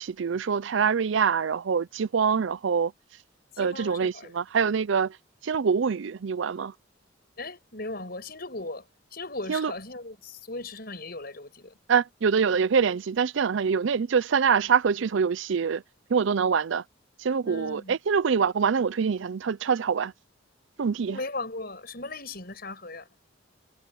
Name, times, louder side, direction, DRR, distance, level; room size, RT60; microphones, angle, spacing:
voice 1, 0.0-2.9 3.6-5.2 5.4-6.7 9.5-9.7 11.9-15.8 16.1-16.8 17.2-20.1 20.8-21.2, right 6 dB, 70° right, 0.5 m, -25 dB
voice 2, 3.5-4.3 7.4-8.8 9.1-11.7 17.4-18.0 21.1-23.1, left 2 dB, 50° left, 7.5 m, -37 dB
head